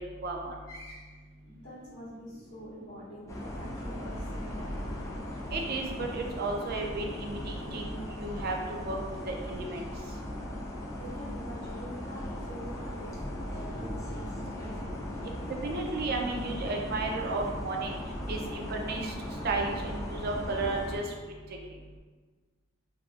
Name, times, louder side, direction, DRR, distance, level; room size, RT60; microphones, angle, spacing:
voice 1, 0.0-0.6 5.5-9.0 9.3-9.9 15.6-17.9 18.3-19.1 19.4-21.0, right 3 dB, 50° right, 1 dB, 0.4 m, -33 dB
voice 2, 0.7-5.1 11.0-15.0, equal, 60° left, -9 dB, 0.7 m, -46 dB
sound 1, 3.3-21.0, left 1 dB, 15° left, 0.4 m, -38 dB
3.2 x 2.6 x 2.4 m, 1.4 s
head